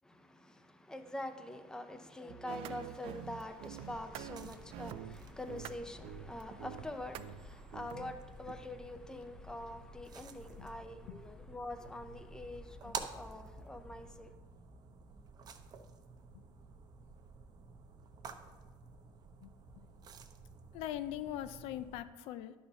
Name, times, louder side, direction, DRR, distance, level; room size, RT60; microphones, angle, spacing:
voice 1, 0.0-14.3, left 1 dB, 5° left, 0.7 m, -45 dB
sound 1, 2.3-8.5, right 12 dB, 65° right, 0.4 m, -47 dB
Thunderstorm, 2.8-14.3, left 3 dB, 50° left, 1.9 m, -57 dB
sound 2, 3.9-22.0, right 5 dB, 40° right, 0.7 m, -51 dB
voice 2, 20.7-22.5, left 12 dB, 75° left, 0.5 m, -41 dB
11.0 x 4.3 x 5.6 m
cardioid pair, 115°, 10 cm